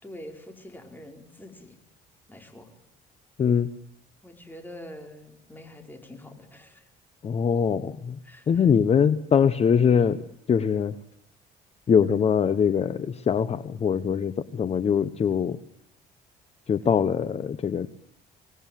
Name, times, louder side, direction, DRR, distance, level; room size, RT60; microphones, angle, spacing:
voice 1, 0.0-1.8 2.3-2.7 4.2-6.9 8.2-8.7 13.8-14.0, left 1 dB, 10° left, 4 dB, 5.0 m, -45 dB
voice 2, 3.4-3.7 7.2-8.2 8.5-10.2 10.5-11.0 11.9-15.6 16.7-17.9, left 7 dB, 40° left, 14 dB, 1.1 m, -22 dB
25.5 x 19.0 x 9.2 m, 0.67 s
cardioid pair, 110°, 17 cm